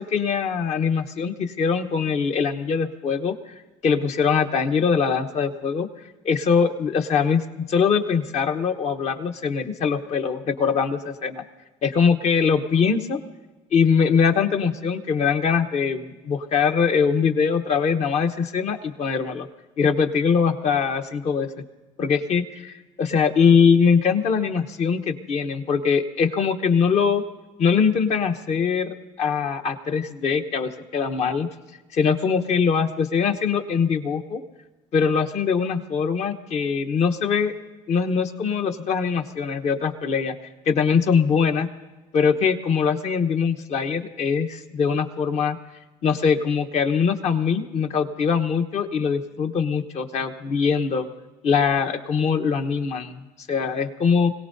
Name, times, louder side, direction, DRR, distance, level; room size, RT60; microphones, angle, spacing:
voice 1, 0.0-3.5 3.8-5.9 6.2-11.4 11.8-13.2 13.7-19.5 19.8-21.5 22.0-27.2 27.6-31.5 31.9-34.4 34.9-37.6 37.9-40.3 40.6-41.7 42.1-45.6 46.0-51.0 51.4-54.3, left 6 dB, 55° left, 7 dB, 1.1 m, -22 dB
25.5 x 17.5 x 2.7 m, 1.1 s
supercardioid pair, 85°, 14 cm